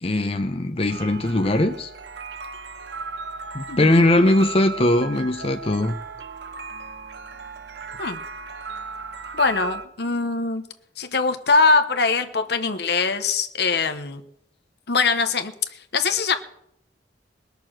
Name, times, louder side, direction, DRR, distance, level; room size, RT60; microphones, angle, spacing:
voice 1, 0.0-1.9 3.5-6.0, left 1 dB, 35° left, 5 dB, 0.8 m, -20 dB
sound 1, 0.9-9.9, right 4 dB, 70° right, 0.7 m, -36 dB
voice 2, 3.7-4.0 8.0-8.2 9.3-10.6 11.0-14.2 14.9-16.4, left 4 dB, 65° left, 9 dB, 1.1 m, -22 dB
20.5 x 6.9 x 6.2 m, 0.76 s
head